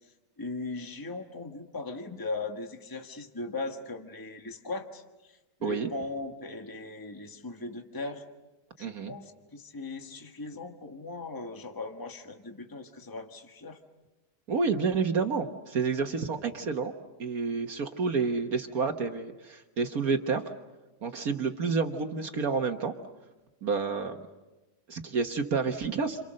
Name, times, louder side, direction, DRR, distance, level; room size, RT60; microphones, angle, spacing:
voice 1, 0.0-8.2 8.8-13.8, left 3 dB, 15° left, 4 dB, 1.6 m, -39 dB
voice 2, 8.8-9.1 14.5-16.9 17.2-20.4 21.0-22.9 23.6-24.2 24.9-26.2, right 5 dB, 65° right, 5 dB, 1.7 m, -29 dB
29.5 x 27.5 x 6.5 m, 1.1 s
omnidirectional pair, 1.7 m